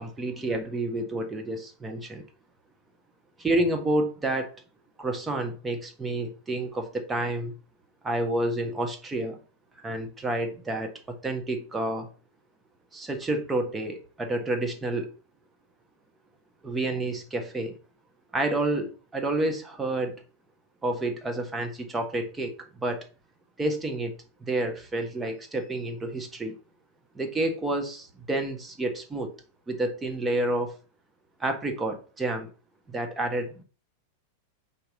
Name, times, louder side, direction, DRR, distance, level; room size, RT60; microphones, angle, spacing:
voice 1, 0.0-2.2 3.4-4.6 5.0-7.5 8.0-9.4 9.8-12.1 12.9-15.1 16.6-17.8 18.3-20.1 20.8-23.1 23.6-24.1 24.4-26.6 27.1-29.3 29.7-30.7 31.4-32.5 32.9-33.6, right 2 dB, 15° right, 1.3 m, -29 dB
4.6 x 4.2 x 5.3 m
figure-of-eight pair, 90°, 0 cm